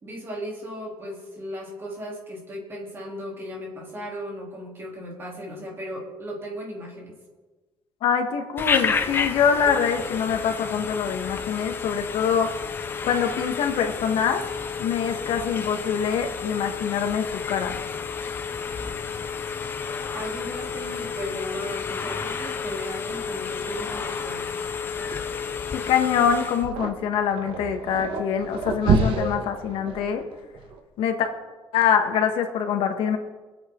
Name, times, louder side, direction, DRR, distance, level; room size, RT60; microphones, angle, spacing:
voice 1, 0.0-7.1 20.1-24.5, equal, 25° right, -2 dB, 3.7 m, -36 dB
voice 2, 8.0-12.5 13.0-14.4 14.8-17.8 25.7-30.2 31.0-31.3 31.7-33.2, left 7 dB, 80° left, 5 dB, 1.7 m, -24 dB
Telephone, 8.6-26.7, left 5 dB, 25° left, 0.9 m, -31 dB
sound 1, 24.9-30.8, right 4 dB, 70° right, 1.7 m, -28 dB
25.5 x 8.7 x 4.0 m, 1.3 s
cardioid pair, 170°, 9 cm